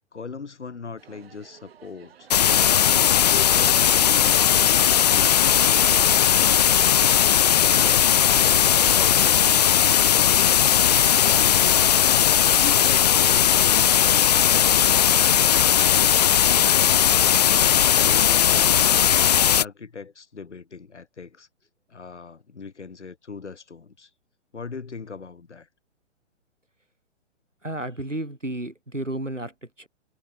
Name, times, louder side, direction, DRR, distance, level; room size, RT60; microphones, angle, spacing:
voice 1, 0.0-2.3 2.7-5.9 7.7-8.2 8.5-9.3 9.9-10.6 11.2-16.0 16.4-18.7 19.0-21.5 21.9-24.1 24.5-25.7, left 5 dB, 70° left, 3.7 m, -40 dB
sound 1, 1.0-10.2, right 8 dB, 55° right, 3.1 m, -50 dB
sound 2, 2.3-19.6, left 9 dB, 35° left, 0.5 m, -18 dB
voice 2, 27.6-29.9, right 1 dB, 90° right, 4.0 m, -32 dB
figure-of-eight pair, 125°, 36 cm